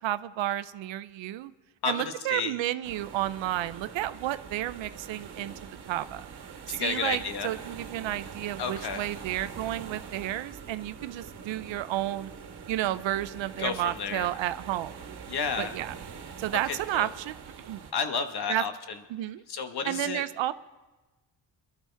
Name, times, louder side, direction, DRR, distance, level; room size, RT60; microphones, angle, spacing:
voice 1, 0.0-1.5 1.9-5.5 5.9-6.3 6.7-12.3 12.7-14.9 15.6-15.9 16.4-17.4 17.6-17.9 18.5-18.6 19.1-19.4 19.9-20.5, right 14 dB, 85° right, 14 dB, 0.6 m, -31 dB
voice 2, 1.8-2.6 6.7-7.5 8.6-9.1 13.6-14.3 15.3-15.8 16.7-17.1 17.9-19.0 19.5-20.2, left 5 dB, 60° left, 7 dB, 1.4 m, -32 dB
sound 1, 2.8-17.9, right 6 dB, 60° right, 1.5 m, -44 dB
22.5 x 12.5 x 3.4 m, 1.2 s
cardioid pair, 80°, 44 cm